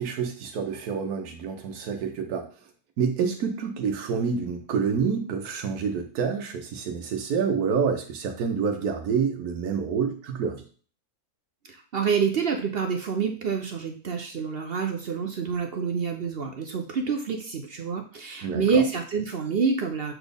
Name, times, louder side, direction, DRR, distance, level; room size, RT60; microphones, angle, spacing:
voice 1, 0.0-2.5 3.0-10.6 18.4-18.8, right 6 dB, 90° right, 3 dB, 1.3 m, -28 dB
voice 2, 11.7-20.1, right 5 dB, 55° right, 5 dB, 0.7 m, -27 dB
7.2 x 4.1 x 3.4 m, 0.40 s
omnidirectional pair, 1.6 m